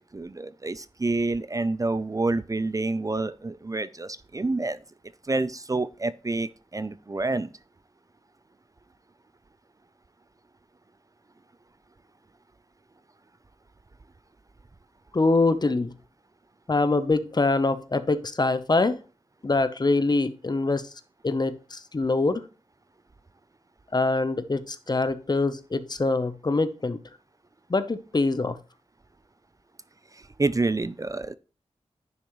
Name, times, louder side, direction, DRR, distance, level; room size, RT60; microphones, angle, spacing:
voice 1, 0.1-4.8 5.3-7.5 30.1-31.3, right 2 dB, 30° right, 0.5 m, -28 dB
voice 2, 15.1-15.9 16.7-19.0 19.4-20.9 21.2-22.4 23.9-27.0 27.7-28.6, left 3 dB, 40° left, 0.8 m, -24 dB
10.5 x 6.4 x 3.1 m
wide cardioid pair, 75°, 11 cm